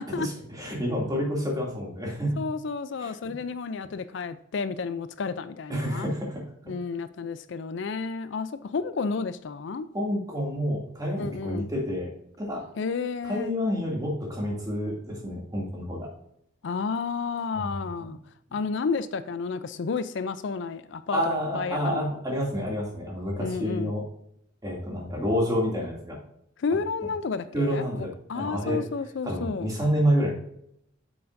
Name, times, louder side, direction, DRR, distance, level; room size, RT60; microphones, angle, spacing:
voice 1, 0.2-2.4 3.0-3.1 5.7-6.4 9.9-12.1 12.4-12.6 13.2-16.1 17.5-17.7 18.0-18.1 21.1-24.0 24.6-26.2 27.5-28.8 29.2-30.3, equal, 20° right, 2.5 m, -28 dB
voice 2, 2.4-6.1 6.7-9.9 11.2-11.7 12.8-13.5 16.6-18.2 18.5-22.1 23.4-23.9 26.6-29.7, left 5 dB, 65° left, 0.4 m, -31 dB
8.4 x 7.1 x 2.6 m
head